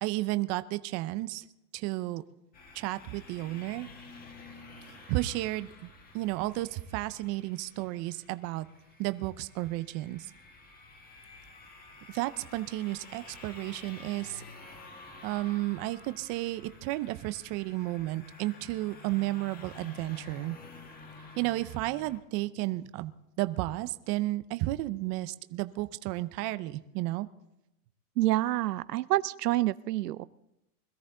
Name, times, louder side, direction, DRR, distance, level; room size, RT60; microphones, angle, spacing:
voice 1, 0.0-1.5 1.7-2.2 2.7-3.9 5.1-8.7 9.0-10.3 12.1-14.4 15.2-20.6 21.4-23.1 23.4-27.3, right 18 dB, 35° right, 12 dB, 0.6 m, -32 dB
sound 1, 2.5-22.2, left 3 dB, 20° left, 1.7 m, -51 dB
voice 2, 28.2-30.3, right 16 dB, 85° right, 17 dB, 0.7 m, -27 dB
21.5 x 13.5 x 3.8 m, 0.88 s
supercardioid pair, 135°, 47 cm